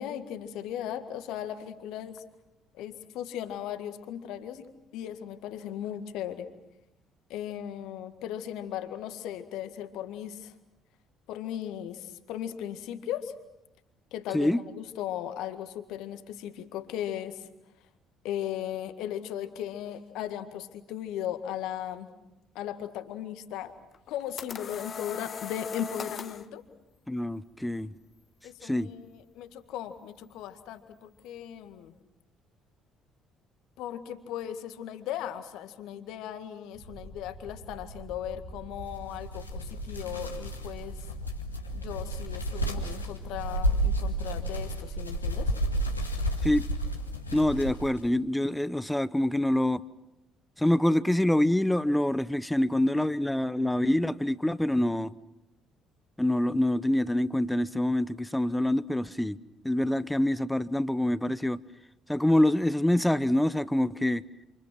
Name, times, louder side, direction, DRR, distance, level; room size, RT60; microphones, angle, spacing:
voice 1, 0.0-2.2 2.7-4.7 4.9-6.5 7.3-10.5 11.3-13.3 14.1-17.5 18.2-22.1 22.6-23.7 24.1-26.6 28.4-31.9 33.8-41.0 41.7-45.5, left 10 dB, 60° left, 1.8 m, -37 dB
sound 1, 23.9-26.5, left 6 dB, 40° left, 1.1 m, -39 dB
voice 2, 27.1-27.9 28.6-28.9 46.4-46.7 47.3-49.8 50.6-55.1 56.2-59.4 59.6-61.6 62.1-64.2, left 1 dB, 5° left, 0.9 m, -26 dB
sound 2, 36.7-44.5, right 1 dB, 80° right, 6.7 m, -46 dB
sound 3, 38.8-48.1, right 1 dB, 90° left, 1.9 m, -31 dB
28.0 x 28.0 x 6.2 m
figure-of-eight pair, 50°, 0 cm